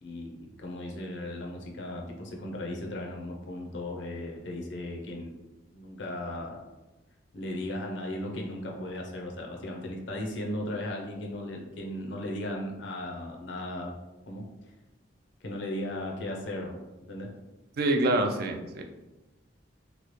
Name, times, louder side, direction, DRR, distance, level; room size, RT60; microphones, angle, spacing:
voice 1, 0.0-5.3 5.7-6.6 7.3-13.9 14.3-14.4 15.4-17.3, left 1 dB, 65° left, 1 dB, 0.6 m, -36 dB
voice 2, 17.8-18.8, right 1 dB, 55° right, 5 dB, 0.3 m, -26 dB
3.0 x 2.3 x 3.0 m, 1.1 s
head